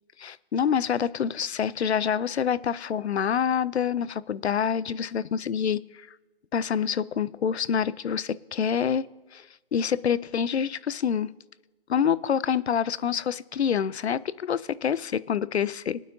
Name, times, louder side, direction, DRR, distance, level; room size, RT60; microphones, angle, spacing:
voice 1, 0.2-6.1 6.5-9.0 9.3-9.5 9.7-11.3 11.9-16.0, left 8 dB, 90° left, 19 dB, 0.5 m, -26 dB
22.5 x 9.2 x 2.6 m, 1.2 s
hypercardioid pair, 155°, 32 cm